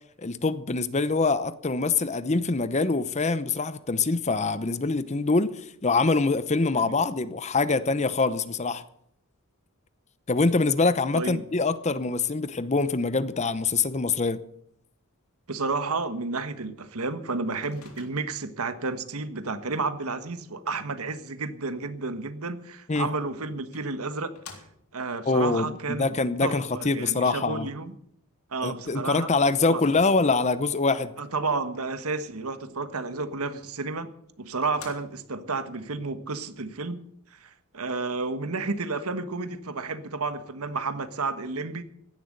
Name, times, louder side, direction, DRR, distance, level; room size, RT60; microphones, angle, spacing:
voice 1, 0.2-8.8 10.3-14.4 22.9-23.1 25.3-27.7 28.6-31.1, left 3 dB, 30° left, 0.8 m, -24 dB
voice 2, 15.5-24.3 24.9-26.2 26.4-27.9 28.5-29.3 29.7-29.8 31.2-34.1 34.4-37.0 37.3-41.8, right 3 dB, 85° right, 1.4 m, -31 dB
Microwave oven, 17.6-18.5 22.9-23.0 23.7-25.1 29.7-30.6 33.7-33.8 34.3-34.4 34.6-35.5, left 5 dB, 85° left, 3.4 m, -49 dB
16.0 x 11.0 x 6.7 m
head